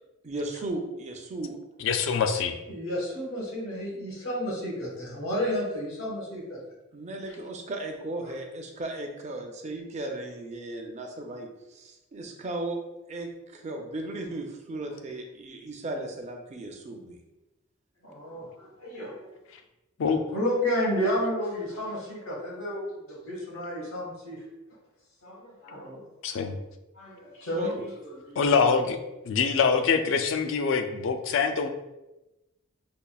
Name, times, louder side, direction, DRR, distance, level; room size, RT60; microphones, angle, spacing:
voice 1, 0.2-1.6 6.9-12.8 13.1-17.2 27.6-27.8, right 2 dB, 35° right, 3 dB, 0.5 m, -36 dB
voice 2, 1.8-2.5 20.0-20.2 26.2-26.6 28.4-29.0 29.3-31.7, left 5 dB, 65° left, 7 dB, 0.4 m, -24 dB
voice 3, 2.7-6.6 18.0-19.3 20.3-24.4 25.2-26.0 26.9-27.7 28.2-28.4, equal, 85° left, -3 dB, 1.3 m, -31 dB
5.2 x 2.4 x 2.3 m, 1.0 s
head